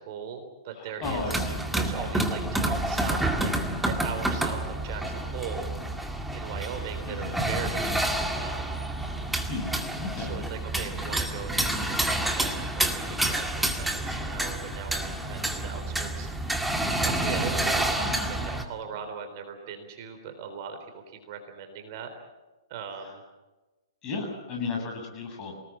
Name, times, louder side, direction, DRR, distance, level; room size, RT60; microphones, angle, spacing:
voice 1, 0.0-1.3 1.7-5.7 6.0-8.1 8.3-8.8 10.2-22.1 22.7-23.2, right 6 dB, 40° right, 6 dB, 3.8 m, -39 dB
voice 2, 0.7-1.6 1.8-2.1 7.0-7.4 9.5-10.3 18.0-18.3 23.0-23.2 24.0-25.6, left 4 dB, 25° left, 1 dB, 7.8 m, -35 dB
sound 1, 1.0-18.7, right 1 dB, 5° right, 2.1 m, -29 dB
26.5 x 19.5 x 7.5 m, 1.1 s
figure-of-eight pair, 120°, 3 cm